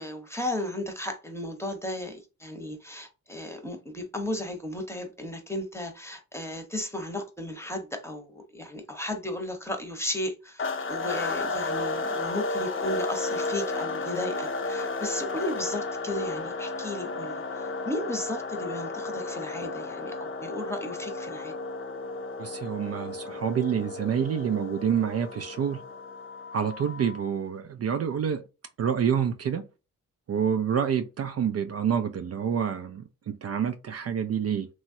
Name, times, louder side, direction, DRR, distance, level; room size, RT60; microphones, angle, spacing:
voice 1, 0.0-21.5, left 1 dB, 10° left, 0.9 m, -35 dB
sound 1, 10.6-27.3, left 3 dB, 40° left, 0.6 m, -33 dB
voice 2, 22.4-25.8 26.5-28.4 28.8-29.7 30.3-34.7, right 8 dB, 45° right, 0.4 m, -28 dB
3.0 x 2.3 x 2.6 m
cardioid pair, 65°, 34 cm